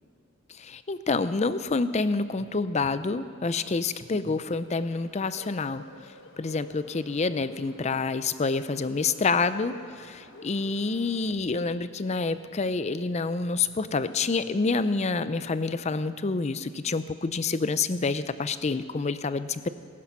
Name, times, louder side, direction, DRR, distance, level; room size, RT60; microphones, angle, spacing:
voice 1, 0.6-5.8 6.4-19.7, left 4 dB, 35° left, 13 dB, 0.5 m, -28 dB
Bird, 4.8-11.3, left 2 dB, 65° left, 1.1 m, -49 dB
19.0 x 11.0 x 5.9 m, 2.4 s
head